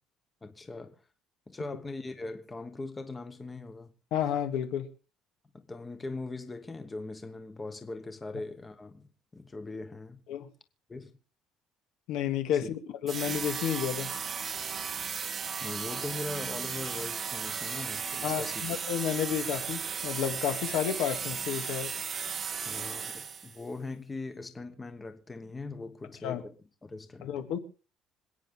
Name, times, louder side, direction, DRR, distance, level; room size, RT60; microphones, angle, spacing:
voice 1, 0.4-1.0 1.5-3.9 5.5-10.2 10.9-11.2 12.6-12.7 15.6-18.7 22.6-26.6 26.8-27.4, left 3 dB, 15° left, 1.1 m, -40 dB
voice 2, 4.1-4.9 10.3-10.5 12.1-14.1 18.2-21.9 26.2-26.4 27.2-27.6, left 9 dB, 75° left, 2.1 m, -31 dB
sound 1, 13.1-23.6, right 6 dB, 30° right, 1.0 m, -35 dB
27.0 x 9.1 x 3.7 m
cardioid pair, 170°, 0 cm